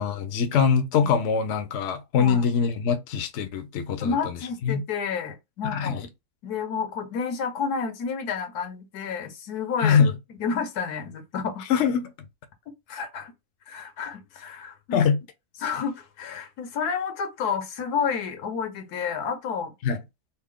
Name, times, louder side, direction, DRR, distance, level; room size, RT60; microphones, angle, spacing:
voice 1, 0.0-4.8 5.7-6.1 9.8-10.1 11.7-12.1 14.9-15.2 19.8-20.0, left 6 dB, 60° left, 0.8 m, -23 dB
voice 2, 4.0-6.0 6.4-10.0 10.4-11.6 12.9-13.3 13.7-15.0 15.6-19.7, left 6 dB, 80° left, 1.4 m, -30 dB
4.2 x 2.0 x 3.6 m
omnidirectional pair, 1.6 m